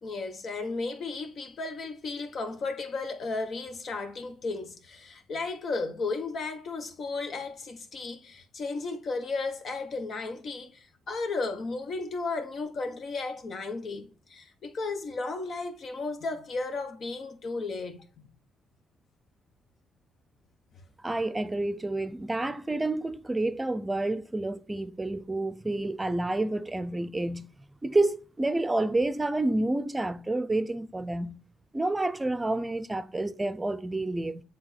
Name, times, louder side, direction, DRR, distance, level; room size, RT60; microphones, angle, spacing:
voice 1, 0.0-18.1, left 3 dB, 60° left, 1.2 m, -34 dB
voice 2, 21.0-27.5 27.8-31.4 31.7-34.4, right 2 dB, 20° right, 0.6 m, -29 dB
7.8 x 3.5 x 4.3 m
supercardioid pair, 70°, 0 cm